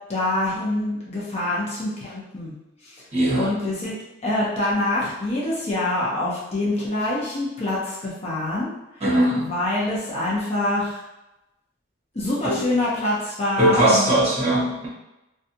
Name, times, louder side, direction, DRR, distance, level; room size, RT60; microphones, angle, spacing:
voice 1, 0.1-2.5 2.8-3.0 3.4-4.0 4.2-8.7 9.4-11.0 12.1-14.1, left 1 dB, 30° left, -6 dB, 0.6 m, -25 dB
voice 2, 3.1-3.5 9.0-9.5 12.4-12.6 13.6-14.9, right 1 dB, 30° right, -8 dB, 1.1 m, -20 dB
2.6 x 2.3 x 2.6 m, 0.95 s
head